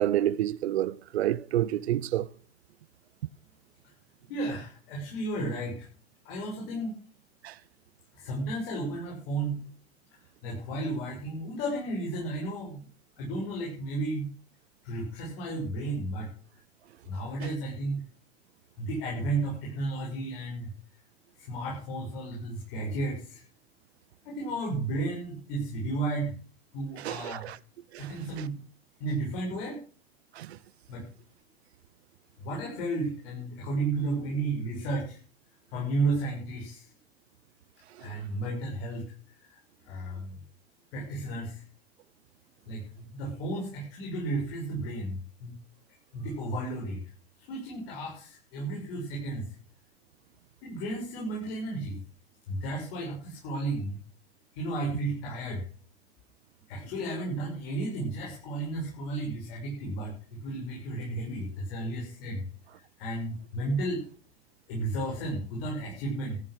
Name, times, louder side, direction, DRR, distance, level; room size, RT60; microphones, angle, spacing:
voice 1, 0.0-2.3 7.4-7.5 27.0-27.6 27.9-28.1 28.4-28.5 30.4-30.6 38.0-38.1, right 12 dB, 85° right, 0.7 m, -29 dB
voice 2, 4.3-5.9 6.3-6.9 8.1-9.6 10.1-12.8 13.2-14.3 14.8-16.3 17.1-18.0 18.8-20.7 21.4-23.4 24.2-26.3 26.7-27.5 28.0-28.6 29.0-29.8 30.9-31.1 32.4-35.2 35.7-36.9 38.0-40.4 40.9-41.6 42.7-45.5 46.1-47.0 47.4-49.6 50.6-52.0 52.5-54.0 54.5-55.6 56.7-62.5 62.7-64.0 64.7-66.4, right 2 dB, 70° left, 6.9 m, -33 dB
14.0 x 10.5 x 6.4 m
hypercardioid pair, 100°, 31 cm